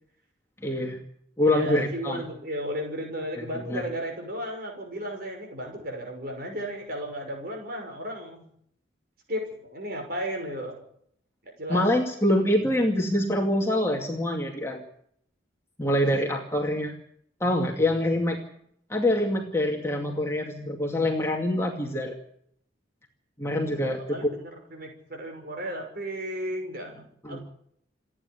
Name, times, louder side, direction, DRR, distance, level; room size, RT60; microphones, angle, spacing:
voice 1, 0.6-1.0 1.4-2.2 3.4-3.5 3.7-3.8 11.7-14.8 15.8-16.9 17.4-18.4 18.9-22.1 23.4-24.3 27.2-27.4, left 1 dB, 15° left, 0 dB, 2.3 m, -25 dB
voice 2, 1.4-8.5 9.3-10.8 11.6-11.9 16.0-16.2 16.6-16.7 23.7-27.4, equal, 50° right, 3 dB, 6.0 m, -34 dB
28.5 x 10.0 x 9.8 m, 0.67 s
head